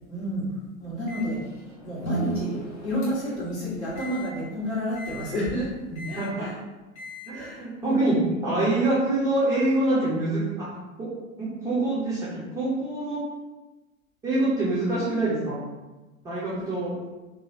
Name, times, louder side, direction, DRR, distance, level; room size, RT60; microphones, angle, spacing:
voice 1, 0.1-0.5 0.8-1.4 1.8-5.7 6.0-6.5 7.3-8.3, equal, 55° left, -7 dB, 1.4 m, -30 dB
Microwave oven, 1.1-3.4 4.0-4.3 5.0-5.3 6.0-6.3 7.0-7.3, left 4 dB, 35° left, 0.9 m, -43 dB
Guitar, 2.0-4.6, right 4 dB, 80° left, 0.6 m, -35 dB
voice 2, 5.9-6.5 7.3-10.7 11.0-11.1 11.4-13.2 14.2-15.6 16.2-16.9, right 2 dB, 10° right, -10 dB, 0.4 m, -25 dB
2.8 x 2.4 x 2.7 m, 1.1 s
figure-of-eight pair, 90°, 40 cm